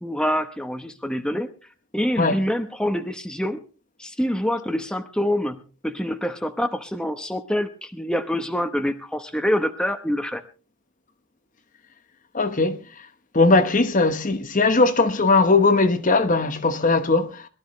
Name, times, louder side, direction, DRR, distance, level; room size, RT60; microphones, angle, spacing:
voice 1, 0.0-1.5 1.9-3.6 4.0-10.4, equal, 5° left, 0.9 m, -26 dB
voice 2, 12.3-12.8 13.3-17.5, left 3 dB, 40° left, 1.0 m, -19 dB
22.0 x 13.0 x 3.1 m
head